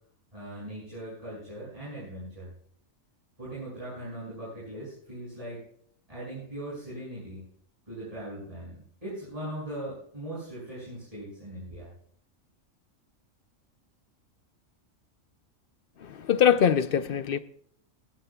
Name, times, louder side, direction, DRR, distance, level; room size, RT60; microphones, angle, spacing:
voice 1, 0.3-2.5 3.4-5.6 6.1-7.4 7.9-11.9, right 1 dB, 25° right, 6.5 m, -39 dB
voice 2, 16.0-17.4, left 8 dB, 55° left, 0.6 m, -23 dB
19.5 x 15.0 x 2.3 m
omnidirectional pair, 1.4 m